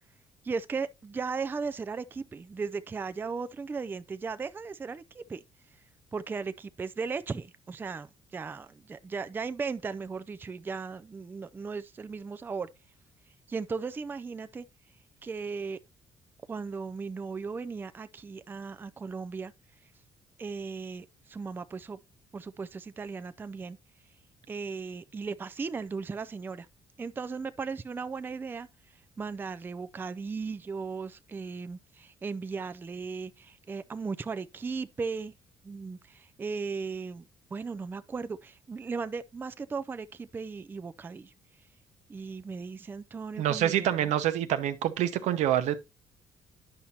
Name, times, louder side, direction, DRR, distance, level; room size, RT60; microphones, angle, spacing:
voice 1, 0.4-5.4 6.1-12.7 13.5-14.7 15.2-15.8 16.5-19.5 20.4-22.0 22.3-23.8 24.5-26.7 27.0-28.7 29.2-35.3 35.6-41.3 42.1-44.1, right 5 dB, 20° right, 0.3 m, -36 dB
voice 2, 43.4-45.8, right 11 dB, 85° right, 0.8 m, -26 dB
10.0 x 5.7 x 2.8 m
cardioid pair, 120°, 12 cm